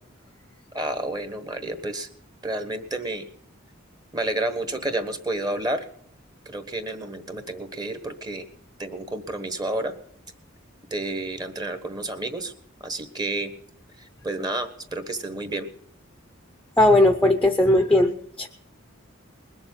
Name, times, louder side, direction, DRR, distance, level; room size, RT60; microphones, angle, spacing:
voice 1, 0.7-2.1 2.4-3.2 4.1-5.9 6.4-8.5 8.8-10.0 10.9-12.5 12.8-13.5 14.0-15.7, right 2 dB, 20° right, 9 dB, 1.2 m, -30 dB
voice 2, 16.8-18.5, left 1 dB, 5° left, 6 dB, 0.7 m, -18 dB
21.0 x 7.1 x 8.6 m, 0.67 s
head